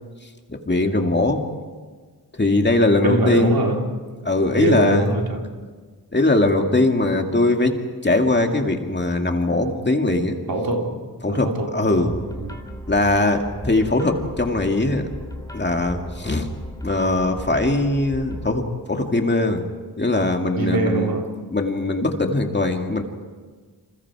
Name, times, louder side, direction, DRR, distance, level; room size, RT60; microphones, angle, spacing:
voice 1, 0.5-1.5 2.3-3.6 4.2-5.1 6.1-10.4 11.2-12.1 12.9-15.1 15.5-16.5 16.8-19.6 20.0-21.1 21.5-23.0, left 2 dB, 25° left, 3 dB, 2.3 m, -20 dB
voice 2, 3.0-3.8 4.6-5.4 10.5-11.0 11.3-12.6 20.6-21.2, right 2 dB, 65° right, 1 dB, 3.7 m, -23 dB
sound 1, 12.1-18.5, equal, 10° left, 2.8 m, -36 dB
29.5 x 27.5 x 4.9 m, 1.5 s
wide cardioid pair, 105°, 38 cm